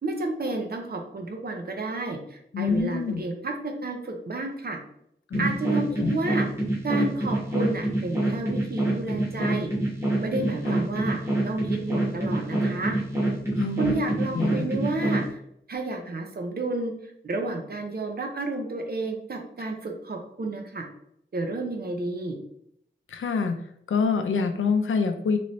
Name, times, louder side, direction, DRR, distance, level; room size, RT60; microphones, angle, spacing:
voice 1, 0.0-4.8 5.4-6.5 6.8-9.7 10.2-11.2 11.4-13.0 13.8-15.4 15.7-16.9 17.2-20.8 21.3-22.4, right 2 dB, 50° right, 3 dB, 0.6 m, -31 dB
voice 2, 2.5-3.2 5.3-5.6 6.0-6.2 10.7-10.8 13.5-13.9 14.3-14.7 23.1-23.6 23.9-25.4, left 5 dB, 90° left, 6 dB, 0.4 m, -26 dB
sound 1, 5.3-15.3, right 1 dB, 15° right, 1.1 m, -26 dB
3.0 x 3.0 x 2.6 m, 0.72 s
wide cardioid pair, 100°, 20 cm